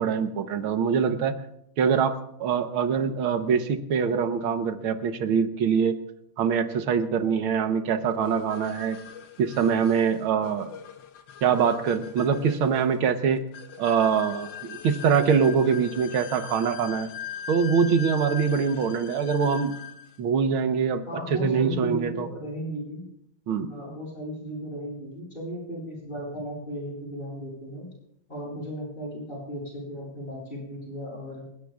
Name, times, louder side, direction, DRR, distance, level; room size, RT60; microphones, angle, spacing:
voice 1, 0.0-1.3 1.8-6.0 6.4-9.0 9.4-10.7 11.4-13.4 13.8-17.1 17.5-19.7 20.2-22.3 23.5-23.7, right 6 dB, 80° right, 8 dB, 1.9 m, -24 dB
sound 1, 8.2-20.2, left 8 dB, 70° left, 1.4 m, -41 dB
voice 2, 21.1-23.1 23.7-27.9 28.3-31.4, equal, 25° left, -5 dB, 8.3 m, -36 dB
30.0 x 16.5 x 2.4 m, 0.78 s
omnidirectional pair, 2.3 m